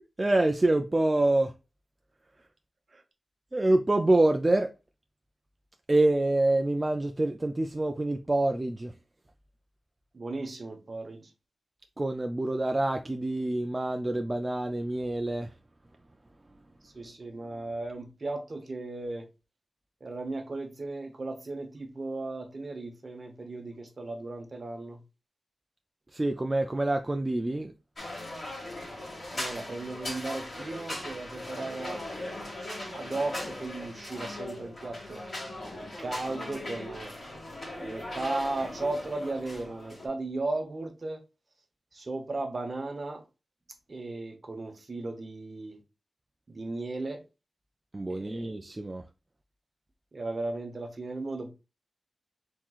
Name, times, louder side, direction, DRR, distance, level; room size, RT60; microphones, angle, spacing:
voice 1, 0.2-1.5 3.5-4.7 5.9-8.9 12.0-15.5 26.1-27.7 47.9-49.0, right 2 dB, 20° right, 0.3 m, -26 dB
voice 2, 10.1-11.3 16.8-19.3 20.0-25.0 29.3-32.0 32.8-35.2 36.0-37.1 37.8-41.2 41.9-43.2 43.9-45.8 46.5-47.2 48.1-48.5 50.1-51.5, right 2 dB, 40° right, 0.9 m, -36 dB
sound 1, 28.0-40.1, left 1 dB, 45° left, 2.1 m, -39 dB
4.6 x 3.5 x 2.4 m
wide cardioid pair, 140°, 0 cm